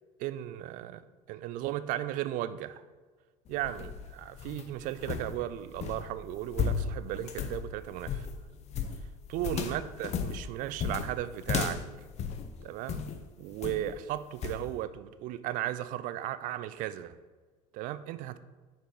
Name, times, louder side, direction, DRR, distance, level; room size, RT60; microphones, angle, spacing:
voice 1, 0.2-1.0 1.3-2.8 3.5-8.3 9.3-11.8 12.6-13.1 13.4-17.2 17.7-18.4, right 13 dB, 45° right, 14 dB, 0.4 m, -35 dB
sound 1, 3.5-13.2 13.6-14.0 14.4-14.6, left 6 dB, 35° left, 0.6 m, -35 dB
6.5 x 3.5 x 4.5 m, 1.4 s
figure-of-eight pair, 65°, 19 cm